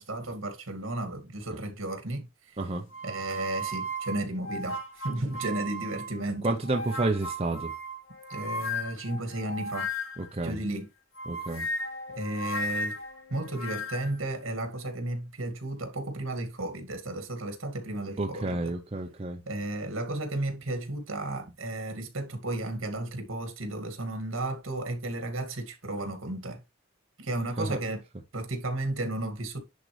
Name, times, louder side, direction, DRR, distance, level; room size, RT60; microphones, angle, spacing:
voice 1, 0.0-2.3 3.0-6.5 8.3-9.9 10.4-10.9 12.1-13.0 13.3-18.7 19.5-26.6 27.2-28.0 28.3-29.6, right 1 dB, 70° right, 2.1 m, -33 dB
sound 1, 2.9-6.2 6.6-10.4 11.2-14.2, equal, 80° left, 1.9 m, -35 dB
voice 2, 6.4-7.7 10.2-10.6 11.3-11.7 18.2-19.4 27.6-27.8, right 2 dB, 30° right, 0.7 m, -30 dB
10.5 x 3.9 x 3.2 m
head